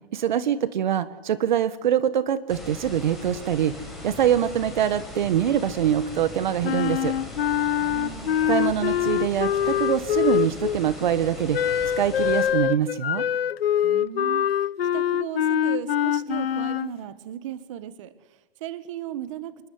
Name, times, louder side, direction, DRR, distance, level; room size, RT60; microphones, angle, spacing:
voice 1, 0.1-3.7 4.0-7.1 8.5-11.6 12.0-13.2, right 10 dB, 50° right, 13 dB, 1.5 m, -24 dB
sound 1, 2.5-12.5, left 2 dB, ahead, 6.4 m, -40 dB
Wind instrument woodwind instrument, 6.6-10.8 11.5-16.9, left 10 dB, 70° left, 1.1 m, -24 dB
voice 2, 7.8-8.4 13.8-18.1 18.6-19.5, right 11 dB, 30° right, 13 dB, 1.6 m, -36 dB
27.0 x 22.0 x 9.6 m, 1.1 s
hypercardioid pair, 170°, 31 cm